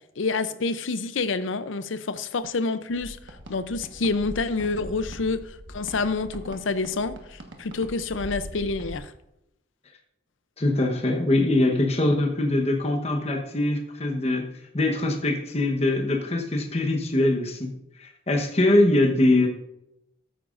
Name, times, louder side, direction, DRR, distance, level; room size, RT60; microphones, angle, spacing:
voice 1, 0.2-3.2 3.5-9.1, left 3 dB, 85° left, 12 dB, 0.6 m, -28 dB
sound 1, 2.9-9.0, equal, 70° right, 1.4 m, -41 dB
voice 2, 10.6-14.5 14.7-17.7 18.0-19.5, left 1 dB, 35° left, 2 dB, 1.0 m, -22 dB
13.5 x 9.0 x 2.5 m, 0.83 s
head